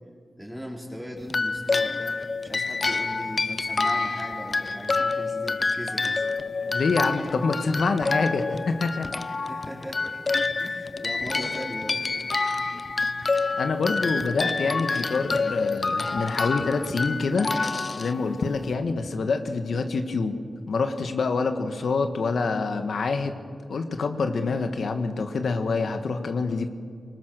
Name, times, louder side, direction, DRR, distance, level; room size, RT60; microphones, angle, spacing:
voice 1, 0.4-6.2 9.4-10.2 10.6-12.3, equal, 5° right, -1 dB, 4.6 m, -38 dB
sound 1, 1.3-18.7, left 3 dB, 45° left, 0.7 m, -28 dB
voice 2, 6.7-9.1 13.6-17.5 18.0-20.4 20.7-23.4 23.7-26.7, left 4 dB, 80° left, 6 dB, 1.4 m, -26 dB
24.0 x 19.5 x 6.6 m, 2.1 s
cardioid pair, 70°, 0 cm